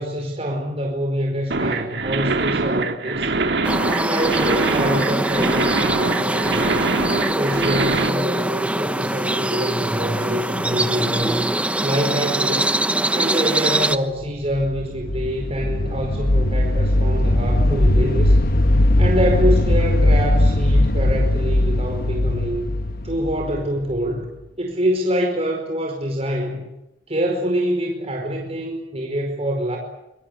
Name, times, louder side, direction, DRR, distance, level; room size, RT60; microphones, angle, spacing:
voice 1, 0.0-3.3 3.9-6.8 7.3-11.5 11.8-12.7 13.1-18.4 19.0-22.8 23.0-24.2 24.6-26.7 27.1-29.8, equal, 35° right, 1 dB, 4.9 m, -25 dB
sound 1, 1.5-8.1, right 3 dB, 70° right, 2.2 m, -23 dB
sound 2, 3.6-14.0, right 1 dB, 5° right, 1.1 m, -23 dB
sound 3, 14.3-24.2, left 1 dB, 55° left, 1.3 m, -19 dB
25.5 x 23.0 x 8.4 m, 0.89 s
head